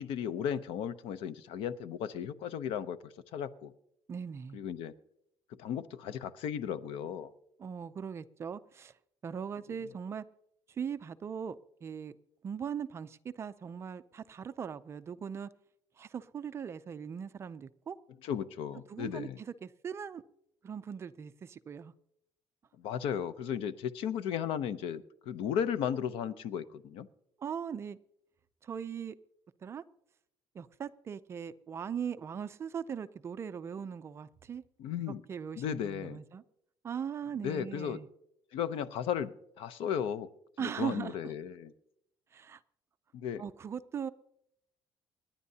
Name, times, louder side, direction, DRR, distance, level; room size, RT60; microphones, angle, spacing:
voice 1, 0.0-3.7 4.5-4.9 5.6-7.3 18.2-19.4 22.8-27.1 34.8-35.2 35.6-36.2 37.4-38.0 38.5-40.3 40.6-41.7 43.1-43.4, left 8 dB, 70° left, 14 dB, 0.7 m, -35 dB
voice 2, 4.1-4.6 7.6-8.9 9.2-10.2 10.7-12.1 12.4-15.5 16.0-18.0 18.9-20.2 20.6-21.9 27.4-28.0 28.6-29.2 29.6-29.8 30.5-34.6 35.1-36.4 36.8-38.1 40.6-41.3 42.3-42.6 43.4-44.1, right 7 dB, 30° right, 12 dB, 0.4 m, -39 dB
27.5 x 10.0 x 2.8 m, 0.78 s
cardioid pair, 165°, 9 cm